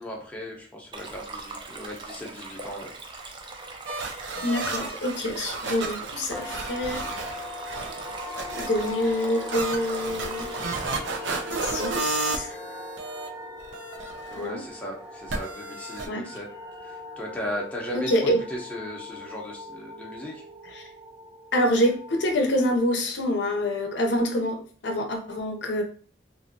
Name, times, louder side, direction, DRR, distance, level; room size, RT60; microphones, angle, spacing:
voice 1, 0.0-2.9 14.3-16.5 16.8-20.4, equal, 10° left, -2 dB, 0.7 m, -36 dB
Stream, 0.9-10.9, right 3 dB, 25° right, 0.4 m, -41 dB
sound 1, 3.9-13.3 13.6-14.4 15.3-16.1, right 4 dB, 80° right, 0.5 m, -33 dB
voice 2, 4.4-7.4 8.5-10.5 11.6-12.6 14.4-14.6 16.1-16.3 17.9-18.4 20.6-20.9 21.5-25.8, left 1 dB, 70° left, 3 dB, 0.6 m, -26 dB
sound 2, 6.3-22.8, left 2 dB, 60° right, 0.9 m, -40 dB
2.9 x 2.6 x 2.6 m, 0.43 s
head